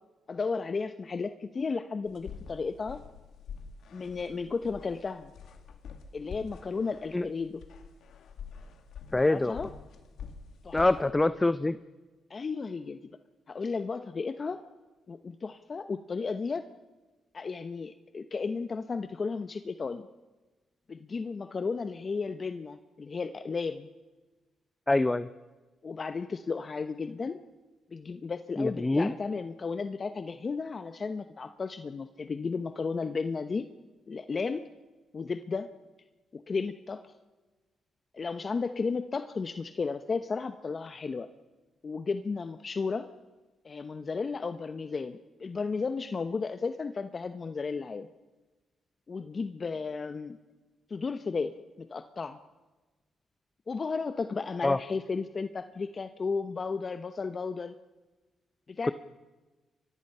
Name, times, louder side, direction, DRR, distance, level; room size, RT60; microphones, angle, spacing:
voice 1, 0.3-3.0 3.9-5.3 6.1-7.6 9.2-9.7 10.6-10.8 12.3-13.0 13.5-14.6 15.1-16.7 17.3-20.1 20.9-23.9 25.8-27.4 27.9-33.7 34.1-34.6 35.1-35.7 36.3-37.0 38.1-41.3 41.8-43.1 43.6-48.1 49.1-50.4 50.9-52.4 53.7-57.7 58.7-58.9, left 4 dB, 40° left, 9 dB, 1.0 m, -34 dB
sound 1, 2.1-11.1, left 6 dB, 75° left, 2.6 m, -47 dB
voice 2, 9.1-9.6 10.7-11.8 24.9-25.3 28.6-29.1 54.6-54.8, left 2 dB, 20° left, 13 dB, 0.7 m, -25 dB
29.5 x 23.5 x 5.6 m, 1.3 s
cardioid pair, 75°, 0 cm